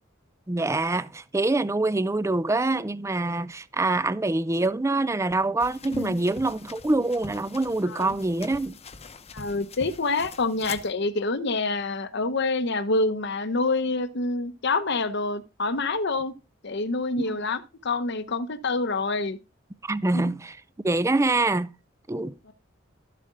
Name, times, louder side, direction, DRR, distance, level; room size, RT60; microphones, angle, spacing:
voice 1, 0.5-8.8 17.2-17.4 19.8-20.6 20.8-21.7 22.1-22.3, right 2 dB, 15° right, 0.5 m, -25 dB
sound 1, 5.6-10.9, left 4 dB, 30° left, 0.9 m, -44 dB
voice 2, 9.3-16.3 16.6-19.4 20.1-20.2 22.5-22.6, left 3 dB, 60° left, 0.9 m, -27 dB
13.0 x 7.7 x 3.8 m
head